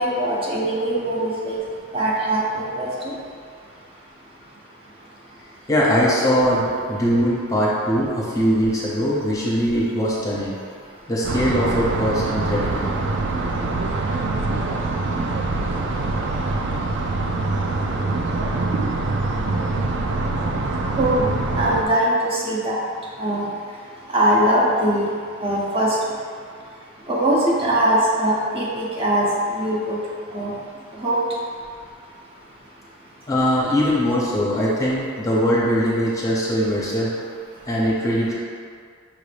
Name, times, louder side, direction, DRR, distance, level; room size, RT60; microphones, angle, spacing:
voice 1, 0.0-1.6 1.9-2.9 21.0-21.3 21.6-22.8 23.2-23.5 24.1-25.1 25.4-26.0 27.1-29.3 29.5-30.0 30.3-30.5 31.0-31.2, right 1 dB, 30° right, -5 dB, 0.7 m, -21 dB
voice 2, 5.7-10.6 11.1-12.9 33.3-37.1 37.7-38.3, equal, 15° left, -6 dB, 0.7 m, -21 dB
sound 1, 11.2-21.8, right 2 dB, 60° right, 0.4 m, -24 dB
5.7 x 2.6 x 3.3 m, 2.1 s
head